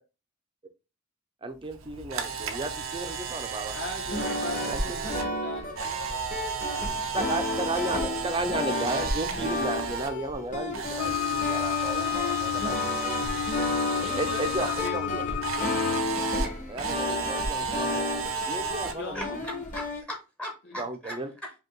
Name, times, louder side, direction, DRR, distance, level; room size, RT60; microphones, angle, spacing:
voice 1, 1.4-3.8 4.6-5.0 7.1-12.7 13.7-15.1 16.7-18.1 18.5-19.3 19.5-19.6 20.8-21.3, right 2 dB, 25° right, 0.5 m, -34 dB
Camera, 1.8-10.1 10.4-14.9 15.4-18.9, right 5 dB, 75° right, 0.7 m, -34 dB
voice 2, 3.7-6.0 14.0-15.3 18.6-19.4 20.7-20.8, left 2 dB, 55° left, 1.3 m, -39 dB
sound 1, 4.0-20.0, left 2 dB, 40° left, 1.2 m, -33 dB
sound 2, 11.0-16.0, left 11 dB, 90° left, 0.3 m, -30 dB
voice 3, 18.6-21.5, equal, 5° left, 0.8 m, -40 dB
5.2 x 2.4 x 3.7 m
head